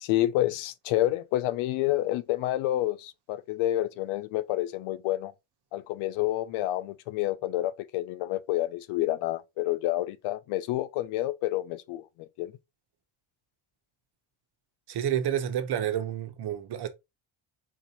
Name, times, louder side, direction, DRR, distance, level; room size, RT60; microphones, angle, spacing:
voice 1, 0.0-5.3 5.7-12.5, left 15 dB, 90° left, 0.7 m, -29 dB
voice 2, 14.9-16.9, right 10 dB, 55° right, 1.1 m, -29 dB
4.5 x 2.7 x 4.3 m
cardioid pair, 105°, 47 cm